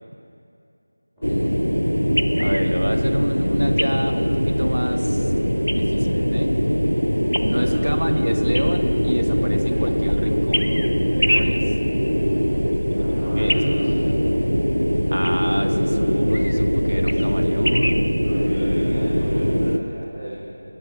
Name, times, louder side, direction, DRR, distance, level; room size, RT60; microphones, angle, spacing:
sound 1, 1.2-19.8, equal, 90° left, 0.6 m, -21 dB
voice 1, 2.4-5.3 5.6-6.5 7.4-10.7 11.3-11.6 13.4-13.6 15.1-18.3, equal, 75° right, 7 dB, 0.7 m, -28 dB
voice 2, 7.6-8.0 12.9-14.1 18.2-20.3, equal, 5° right, -21 dB, 2.7 m, -34 dB
18.0 x 8.6 x 2.8 m, 2.7 s
figure-of-eight pair, 170°, 0 cm